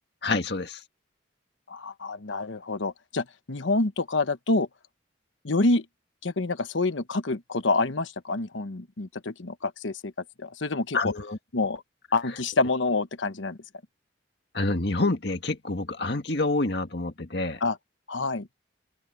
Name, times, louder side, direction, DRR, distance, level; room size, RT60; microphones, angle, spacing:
voice 1, 0.2-0.8 10.9-11.4 12.3-12.4 14.5-17.6, left 2 dB, 55° left, 2.0 m, -27 dB
voice 2, 1.7-4.7 5.4-5.8 6.2-10.1 10.4-11.1 11.5-11.8 12.1-13.6 17.6-17.8 18.1-18.5, left 3 dB, 75° left, 1.1 m, -27 dB
head